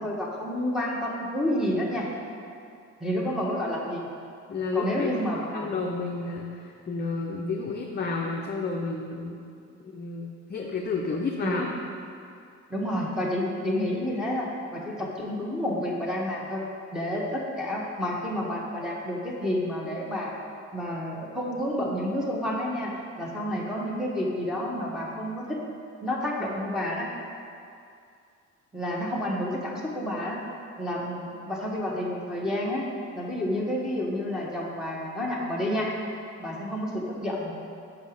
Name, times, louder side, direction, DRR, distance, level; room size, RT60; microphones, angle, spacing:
voice 1, 0.0-2.1 3.0-4.1 4.7-5.7 11.4-11.7 12.7-16.6 16.9-20.3 20.7-22.9 23.2-25.6 26.0-27.1 28.7-30.4 30.8-32.9 33.1-35.9 36.4-37.5, left 1 dB, ahead, -5 dB, 1.2 m, -29 dB
voice 2, 4.5-5.1 5.5-9.4 9.8-11.7, left 3 dB, 35° left, -1 dB, 0.6 m, -31 dB
5.3 x 5.0 x 6.4 m, 2.4 s
cardioid pair, 90°, 30 cm